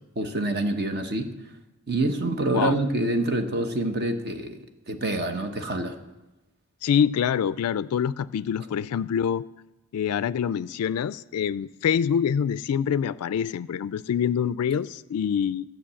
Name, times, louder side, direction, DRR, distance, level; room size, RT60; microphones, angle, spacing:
voice 1, 0.2-1.3 1.9-4.6 4.9-6.0, right 2 dB, 45° right, 1.0 m, -26 dB
voice 2, 6.8-9.4 9.9-15.6, left 8 dB, 85° left, 0.3 m, -25 dB
12.5 x 6.5 x 8.5 m
head